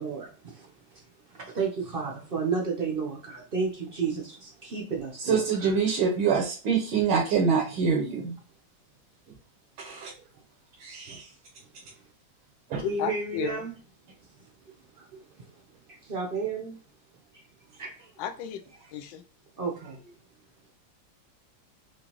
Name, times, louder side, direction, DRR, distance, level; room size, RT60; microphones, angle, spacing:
voice 1, 0.0-5.7 12.8-13.7 14.4-14.5 14.9-15.4 15.9-16.7 17.3-17.4 17.8-18.1 19.6-20.0, right 5 dB, 60° right, 0.5 m, -32 dB
voice 2, 5.2-8.4 9.8-10.1 10.8-11.3 12.7-12.8 15.1-15.2, right 6 dB, 85° right, 1.6 m, -25 dB
voice 3, 12.8-13.6 18.2-18.6 18.9-19.1, left 9 dB, 80° left, 1.3 m, -32 dB
4.9 x 2.4 x 2.9 m
omnidirectional pair, 2.1 m